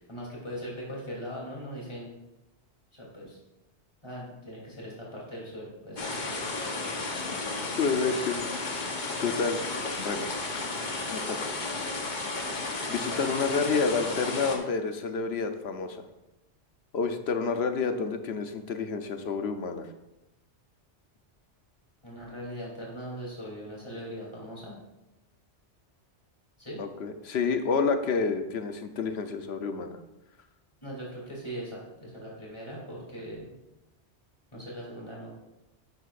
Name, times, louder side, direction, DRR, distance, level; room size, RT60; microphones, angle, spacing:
voice 1, 0.1-2.1 2.9-3.4 4.0-7.1 13.0-13.2 22.0-24.7 26.6-26.8 30.8-33.5 34.5-35.3, equal, 25° left, -5 dB, 3.2 m, -40 dB
sound 1, 6.0-14.6, left 3 dB, 45° left, 1.2 m, -33 dB
voice 2, 7.8-8.6 9.2-9.6 10.0-10.3 11.1-11.6 12.9-16.0 16.9-19.9 26.8-30.0, left 5 dB, 65° left, 8 dB, 1.0 m, -29 dB
11.0 x 8.6 x 2.5 m, 0.96 s
omnidirectional pair, 1.2 m